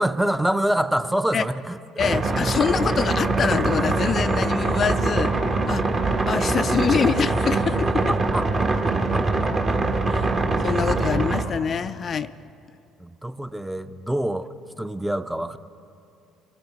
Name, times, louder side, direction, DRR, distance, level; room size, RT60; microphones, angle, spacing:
voice 1, 0.0-1.8 8.1-9.8 13.0-15.6, right 1 dB, 5° right, 11 dB, 0.6 m, -26 dB
voice 2, 2.0-5.3 5.7-5.9 6.3-8.0 10.1-10.3 10.6-12.3, left 7 dB, 45° left, 12 dB, 0.3 m, -25 dB
sound 1, 2.0-11.4, right 3 dB, 35° right, 1.4 m, -23 dB
24.0 x 13.0 x 4.0 m, 2.6 s
hypercardioid pair, 60°, 0 cm